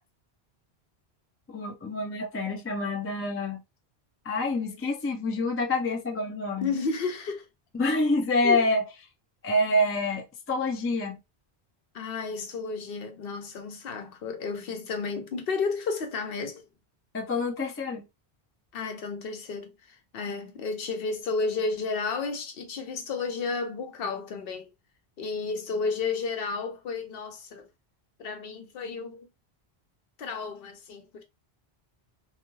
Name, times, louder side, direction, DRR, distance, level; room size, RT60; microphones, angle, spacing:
voice 1, 1.5-3.6 4.2-6.7 7.7-8.8 9.4-11.2 17.1-18.0, left 2 dB, 25° left, 0.3 m, -27 dB
voice 2, 6.6-7.5 8.4-8.6 11.9-16.7 18.7-24.7 25.2-27.7 28.2-29.3 30.2-31.2, left 4 dB, 65° left, 0.8 m, -32 dB
2.3 x 2.2 x 3.0 m
omnidirectional pair, 1.1 m